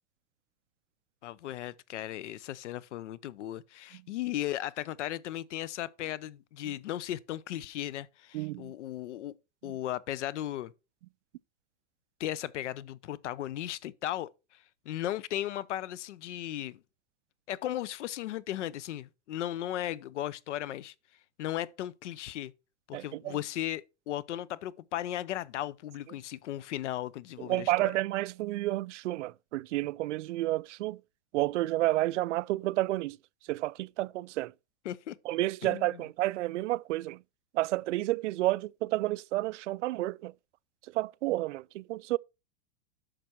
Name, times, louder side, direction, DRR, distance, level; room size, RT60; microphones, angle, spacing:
voice 1, 1.2-9.4 9.6-10.7 12.2-14.3 14.8-16.8 17.5-20.9 21.4-22.5 22.9-27.9 34.8-35.2 35.6-36.0, left 13 dB, 90° left, 0.8 m, -36 dB
voice 2, 8.3-8.7 22.9-23.4 27.5-31.0 31.3-33.2 33.5-34.5 35.3-37.2 37.5-40.3 40.9-42.2, right 17 dB, 85° right, 0.5 m, -30 dB
10.0 x 6.1 x 4.4 m
supercardioid pair, 165°, 35 cm